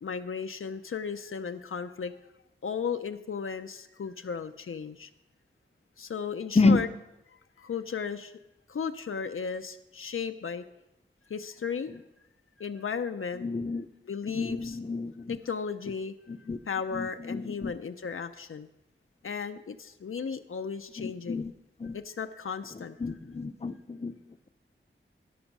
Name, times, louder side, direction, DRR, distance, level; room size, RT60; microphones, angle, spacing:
voice 1, 0.0-2.1 2.6-5.1 6.0-6.9 7.6-8.3 8.7-10.6 11.3-11.9 12.6-13.5 14.1-14.8 15.3-16.1 16.7-18.7 19.2-21.4 21.9-23.0, left 6 dB, 85° left, 8 dB, 0.6 m, -35 dB
voice 2, 13.4-13.9 14.3-15.4 16.3-16.6 16.9-17.7 21.0-21.5 21.8-22.0 22.7-24.1, left 3 dB, 30° left, 10 dB, 0.6 m, -29 dB
16.0 x 6.2 x 6.0 m, 0.93 s
wide cardioid pair, 65°, 21 cm